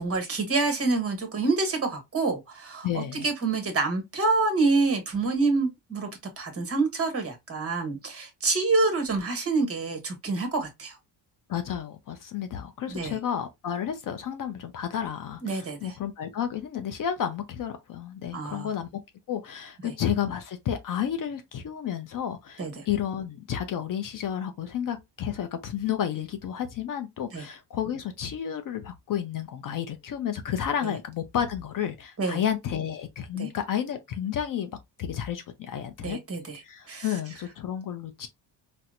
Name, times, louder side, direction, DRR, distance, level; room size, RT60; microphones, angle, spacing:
voice 1, 0.0-6.1 6.4-11.0 12.9-13.2 15.4-15.9 18.3-18.7 22.6-22.7 27.3-27.4 30.8-30.9 32.2-32.4 33.3-33.5 36.0-36.6 36.9-37.1, right 3 dB, 30° right, 1.2 m, -27 dB
voice 2, 2.8-3.3 11.5-19.0 19.3-34.7 35.0-36.2 36.5-38.3, left 9 dB, 45° left, 0.5 m, -31 dB
4.2 x 2.1 x 2.4 m
cardioid pair, 120°, 45 cm